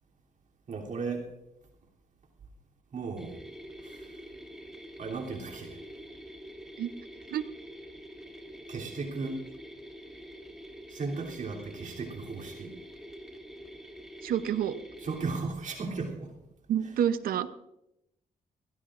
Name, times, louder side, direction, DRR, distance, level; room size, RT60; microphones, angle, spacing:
voice 1, 0.7-1.3 2.9-3.4 3.8-4.1 5.0-5.8 8.7-9.4 10.9-12.7 15.0-16.3 16.8-17.0, right 4 dB, 60° right, -1 dB, 3.1 m, -36 dB
sound 1, 3.2-15.4, equal, 5° right, 2.7 m, -46 dB
voice 2, 14.2-14.8 16.7-17.5, right 9 dB, 90° right, 12 dB, 0.8 m, -28 dB
23.0 x 16.5 x 2.5 m, 0.85 s
cardioid pair, 90°, 15 cm